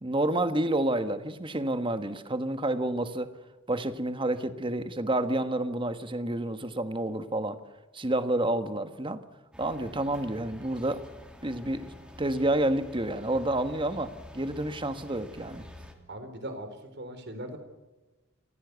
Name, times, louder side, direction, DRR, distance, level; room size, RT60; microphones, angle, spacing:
voice 1, 0.0-3.3 3.7-7.6 7.9-9.2 9.6-11.1 11.4-11.9 12.2-15.6, right 1 dB, 25° right, 10 dB, 1.4 m, -29 dB
sound 1, 9.5-15.9, left 1 dB, 5° right, 2.9 m, -48 dB
voice 2, 16.1-16.7 17.0-17.6, right 1 dB, 55° right, 8 dB, 3.9 m, -39 dB
28.0 x 15.5 x 8.2 m, 1.1 s
head